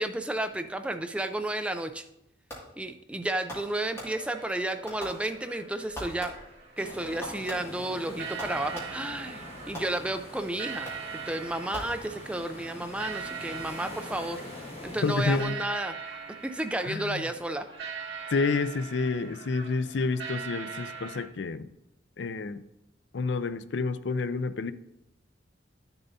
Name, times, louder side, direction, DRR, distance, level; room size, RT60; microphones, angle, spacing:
voice 1, 0.0-2.1 2.8-6.3 6.8-10.9 11.3-14.4 14.8-16.0 16.4-17.6, right 1 dB, 5° right, 0.4 m, -32 dB
Fireworks, 2.5-2.9 3.5-4.5 4.9-5.6 5.9-6.7 7.2-9.2 9.8-10.4 10.9-11.3 11.7-12.5, equal, 15° left, 2.2 m, -43 dB
sound 1, 3.9-21.3, right 6 dB, 75° right, 1.6 m, -42 dB
sound 2, 6.8-15.4, left 1 dB, 30° left, 1.7 m, -44 dB
voice 2, 15.0-15.6 16.8-17.2 18.3-21.7 22.2-22.6 23.1-24.7, left 4 dB, 70° left, 0.4 m, -29 dB
11.5 x 6.9 x 2.7 m
head